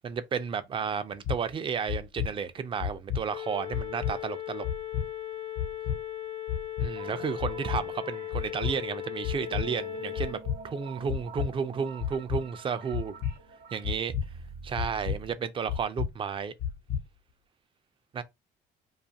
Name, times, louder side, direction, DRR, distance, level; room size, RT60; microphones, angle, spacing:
voice 1, 0.0-4.6 6.8-10.4 10.6-13.2 13.7-14.1 14.6-16.5 18.1-18.2, right 6 dB, 30° right, 0.3 m, -32 dB
sound 1, 1.2-1.4 1.9-2.3 2.8-3.2 3.7-4.1 4.6-5.0 5.6-6.0 6.5-6.9 7.4-7.8 8.3-8.7 9.2-9.6 10.2-10.6 11.1-11.5 12.0-12.4 12.9-13.3 13.8-14.2 14.8-15.2 15.7-16.1 16.6-17.0, left 9 dB, 70° left, 0.8 m, -30 dB
sound 2, 3.3-10.3, left 12 dB, 35° left, 0.5 m, -38 dB
sound 3, 7.0-15.3, right 5 dB, 60° right, 0.7 m, -46 dB
2.4 x 2.4 x 2.7 m
cardioid pair, 110°, 17 cm